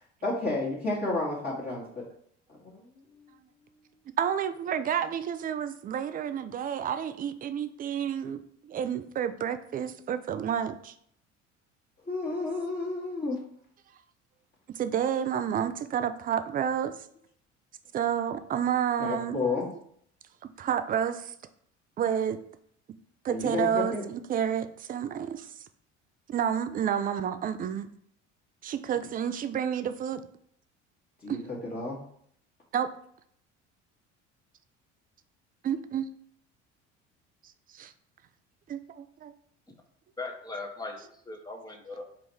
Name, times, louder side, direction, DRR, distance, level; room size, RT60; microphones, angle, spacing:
voice 1, 0.2-2.0 2.5-2.9 12.1-13.4 19.0-19.7 23.3-24.0 31.2-32.0, left 3 dB, 25° left, -6 dB, 1.4 m, -31 dB
voice 2, 4.2-10.9 14.7-16.9 17.9-19.4 20.6-21.3 22.0-22.4 23.2-25.5 26.3-27.9 28.6-30.2 31.3-31.4 32.7-32.9 35.6-36.1 37.7-37.9 38.7-39.3, right 8 dB, 25° right, 10 dB, 0.4 m, -30 dB
voice 3, 40.2-42.0, left 3 dB, 10° left, 2 dB, 1.0 m, -39 dB
3.8 x 2.5 x 4.6 m, 0.65 s
hypercardioid pair, 60°, 36 cm